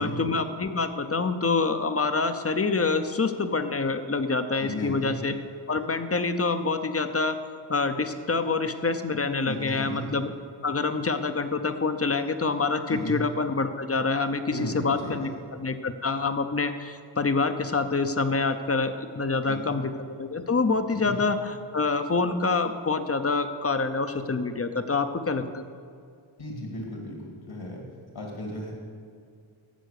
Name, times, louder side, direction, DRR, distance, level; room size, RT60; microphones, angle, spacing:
voice 1, 0.0-5.3 5.7-7.4 7.7-10.3 10.6-25.6, left 4 dB, 30° left, 9 dB, 0.7 m, -26 dB
voice 2, 4.6-5.1 9.5-10.1 12.9-13.2 14.5-15.3 19.5-19.8 20.9-21.2 26.4-27.8 28.1-28.7, left 1 dB, 70° left, 0 dB, 2.3 m, -35 dB
11.5 x 7.5 x 6.6 m, 2.3 s
wide cardioid pair, 80°, 47 cm